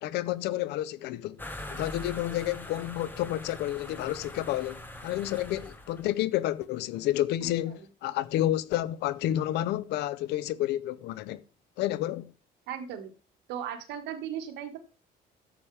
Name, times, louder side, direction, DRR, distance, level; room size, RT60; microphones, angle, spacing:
voice 1, 0.0-1.4 1.7-11.4 11.8-12.3, left 13 dB, 85° left, 0.7 m, -30 dB
sound 1, 1.4-6.2, left 1 dB, 10° left, 1.6 m, -42 dB
voice 2, 12.7-13.1 13.5-14.8, right 9 dB, 85° right, 1.7 m, -36 dB
11.0 x 7.2 x 3.4 m
cardioid pair, 110°, 17 cm